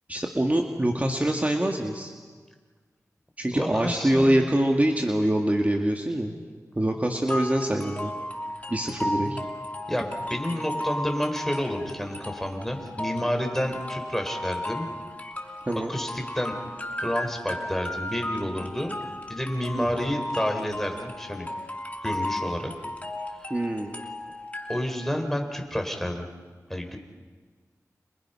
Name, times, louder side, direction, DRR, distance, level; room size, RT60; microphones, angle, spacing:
voice 1, 0.1-2.1 3.4-6.3 6.8-8.1 8.7-9.4 15.7-15.9 19.8-20.0 23.5-23.9, right 1 dB, 25° right, 2 dB, 2.2 m, -24 dB
voice 2, 3.5-4.5 9.1-9.4 9.9-14.9 15.9-16.6 17.0-18.9 19.3-21.5 22.0-22.7 23.4-23.5 24.7-26.3 26.7-27.0, equal, 5° left, 4 dB, 4.4 m, -30 dB
sound 1, 7.3-25.2, left 1 dB, 25° left, 2.9 m, -35 dB
30.0 x 27.5 x 5.8 m, 1.5 s
cardioid pair, 50°, 6 cm